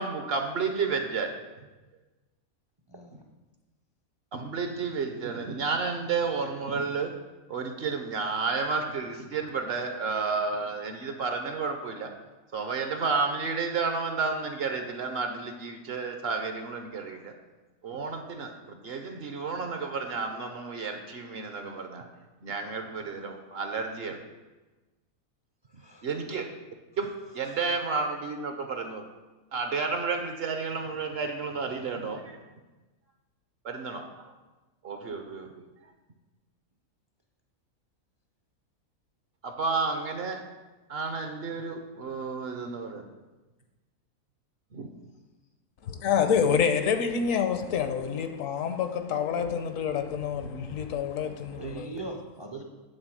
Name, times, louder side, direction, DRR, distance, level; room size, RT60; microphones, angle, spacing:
voice 1, 0.0-1.3 4.3-7.2 7.5-12.1 12.5-17.3 17.8-22.0 22.4-24.2 26.0-26.5 27.0-29.1 29.5-32.4 33.6-34.3 34.8-35.6 39.4-40.4 40.9-43.0 44.7-44.9, right 4 dB, 55° right, 0.8 m, -31 dB
voice 2, 2.9-3.3 25.8-26.1 46.3-46.5 51.6-52.6, right 2 dB, 40° right, 0.3 m, -40 dB
voice 3, 45.8-51.9, left 7 dB, 70° left, 1.0 m, -27 dB
8.9 x 3.8 x 6.2 m
omnidirectional pair, 1.5 m